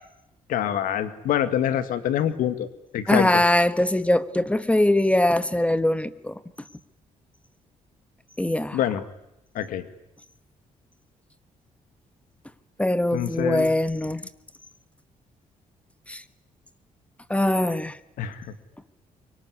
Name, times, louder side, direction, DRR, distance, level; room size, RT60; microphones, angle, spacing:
voice 1, 0.5-2.7 2.9-3.4 8.7-9.0 9.5-9.9 13.1-13.7 18.2-18.5, left 10 dB, 90° left, 11 dB, 2.1 m, -25 dB
voice 2, 3.1-6.3 8.4-8.8 12.8-14.2 16.1-16.2 17.3-18.0, left 1 dB, 10° left, 13 dB, 1.4 m, -22 dB
24.5 x 23.5 x 9.7 m, 0.84 s
cardioid pair, 85°, 14 cm